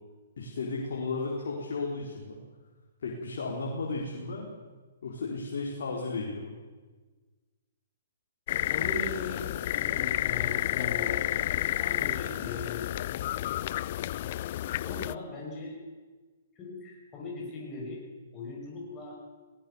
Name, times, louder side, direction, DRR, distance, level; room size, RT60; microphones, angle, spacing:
voice 1, 0.4-2.4 3.0-4.5 5.0-6.5, left 3 dB, 70° left, -2 dB, 4.3 m, -34 dB
sound 1, 8.5-15.2, left 13 dB, 50° left, 0.5 m, -30 dB
voice 2, 8.5-12.9 14.8-15.8 16.5-18.0 18.3-19.2, left 3 dB, 20° left, -2 dB, 6.7 m, -39 dB
19.0 x 19.0 x 7.2 m, 1.3 s
hypercardioid pair, 135°, 0 cm